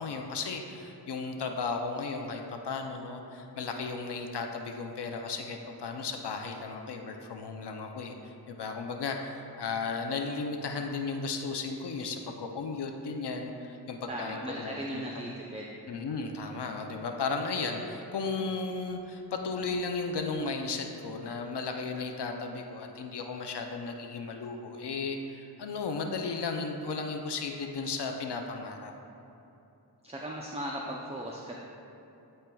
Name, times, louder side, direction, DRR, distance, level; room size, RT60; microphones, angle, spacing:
voice 1, 0.0-15.1 15.9-28.9, left 4 dB, 75° left, 3 dB, 0.6 m, -35 dB
voice 2, 14.1-15.8 30.0-31.6, right 1 dB, 15° right, -2 dB, 0.5 m, -37 dB
11.5 x 4.4 x 2.3 m, 2.9 s
wide cardioid pair, 65°, 41 cm